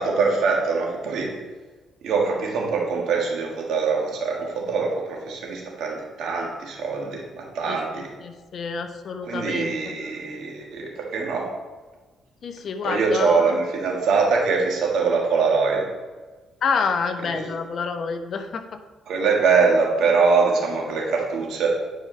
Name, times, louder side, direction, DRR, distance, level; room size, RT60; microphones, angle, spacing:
voice 1, 0.0-1.3 2.0-8.1 9.3-11.5 12.8-15.8 17.3-17.5 19.1-21.7, right 4 dB, 75° right, -1 dB, 1.7 m, -23 dB
voice 2, 7.7-10.0 12.4-13.6 16.6-18.8, left 5 dB, 55° left, 7 dB, 0.7 m, -28 dB
10.0 x 4.8 x 3.2 m, 1.3 s
cardioid pair, 90°, 0 cm